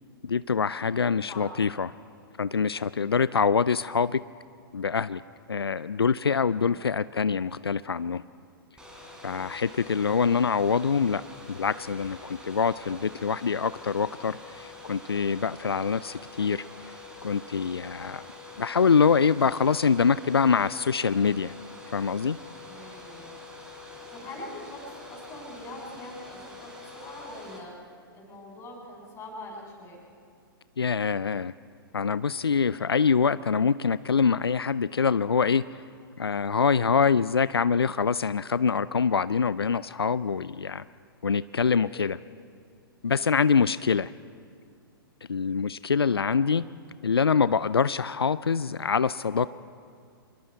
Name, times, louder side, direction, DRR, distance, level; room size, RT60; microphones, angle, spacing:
voice 1, 0.2-1.9 2.4-4.2 4.7-5.2 5.5-8.2 9.2-11.2 11.5-18.3 18.6-21.5 21.9-22.4 30.8-31.5 31.9-35.8 36.2-40.8 41.2-42.2 43.0-44.1 45.3-46.6 47.0-49.5, left 5 dB, 85° left, 16 dB, 0.4 m, -25 dB
voice 2, 0.9-1.5 2.9-3.3 6.6-6.8 22.7-23.4 23.9-30.0 41.6-42.0 43.0-43.4 46.0-46.4 49.3-49.4, left 1 dB, 20° left, -2 dB, 7.2 m, -44 dB
Domestic sounds home sounds, 8.8-27.6, left 3 dB, 5° right, 3.8 m, -45 dB
26.0 x 22.0 x 4.5 m, 2.3 s
figure-of-eight pair, 115°, 13 cm